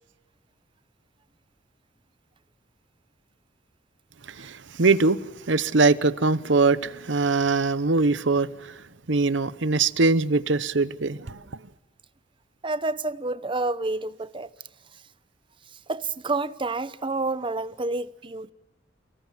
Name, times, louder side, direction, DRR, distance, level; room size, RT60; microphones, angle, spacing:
voice 1, 4.3-8.8 9.1-11.4, right 3 dB, 70° right, 0.9 m, -22 dB
voice 2, 12.6-14.5 15.9-18.5, right 3 dB, 25° right, 0.8 m, -29 dB
30.0 x 19.0 x 7.6 m
head